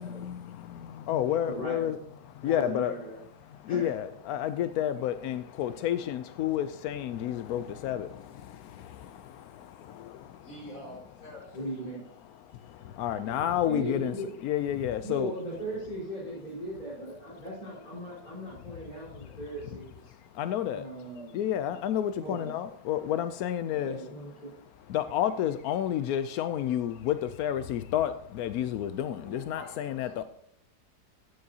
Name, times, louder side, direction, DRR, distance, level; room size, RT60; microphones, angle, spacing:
voice 1, 0.0-2.0 2.2-2.9 3.4-10.5 12.3-14.1 14.4-15.3 18.9-19.3 20.1-21.0 21.3-24.0 24.9-30.2, left 11 dB, 75° left, 0.9 m, -31 dB
voice 2, 1.4-1.9 2.4-3.2 3.7-3.9 11.5-12.0 13.6-14.3 15.0-20.1 20.7-21.4 22.2-22.5 23.7-24.5, right 1 dB, 25° left, 5.0 m, -38 dB
voice 3, 10.4-11.9 29.2-30.0, left 1 dB, 50° left, 4.1 m, -46 dB
14.0 x 9.6 x 2.8 m
omnidirectional pair, 2.0 m